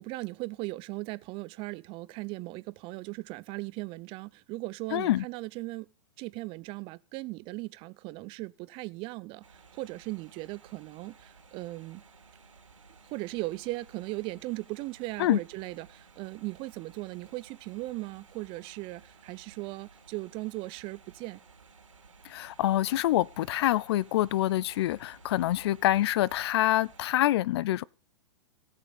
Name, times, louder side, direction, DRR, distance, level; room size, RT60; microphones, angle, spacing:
voice 1, 0.0-5.9 6.2-12.0 13.1-21.4, right 21 dB, 35° right, 0.6 m, -38 dB
voice 2, 4.9-5.2 15.2-15.4 22.2-27.8, left 14 dB, 55° left, 0.5 m, -26 dB
sound 1, 9.4-27.2, right 5 dB, 90° right, 3.4 m, -57 dB
17.0 x 6.6 x 5.2 m
hypercardioid pair, 120°, 16 cm